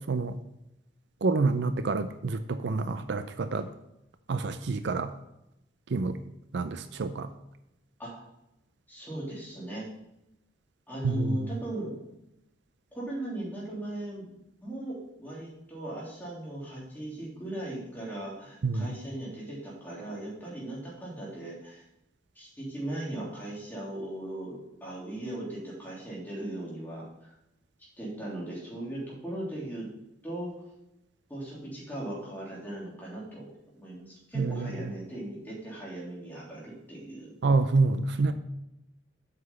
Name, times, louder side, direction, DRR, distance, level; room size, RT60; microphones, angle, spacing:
voice 1, 1.2-3.7 4.3-5.1 5.9-6.2 6.5-7.3 11.0-11.5 18.6-18.9 34.4-34.7 37.4-38.3, right 3 dB, 65° right, 10 dB, 0.5 m, -27 dB
voice 2, 8.9-9.9 10.9-12.0 12.9-14.2 14.6-21.8 22.3-27.0 28.0-29.9 30.2-30.6 31.3-33.5 33.7-37.3, right 1 dB, 10° left, -6 dB, 3.3 m, -38 dB
7.9 x 6.0 x 5.6 m, 0.87 s
head